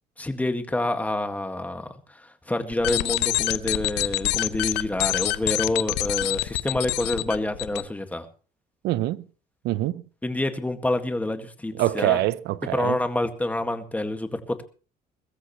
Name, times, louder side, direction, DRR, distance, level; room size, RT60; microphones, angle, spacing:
voice 1, 0.2-8.3 10.2-12.2 12.7-14.6, left 1 dB, 10° left, 1.9 m, -27 dB
sound 1, 2.7-7.8, left 16 dB, 90° left, 0.8 m, -26 dB
voice 2, 8.8-9.2 9.6-10.0 11.8-13.0, right 15 dB, 80° right, 0.8 m, -24 dB
22.0 x 14.0 x 3.1 m
cardioid pair, 110°, 17 cm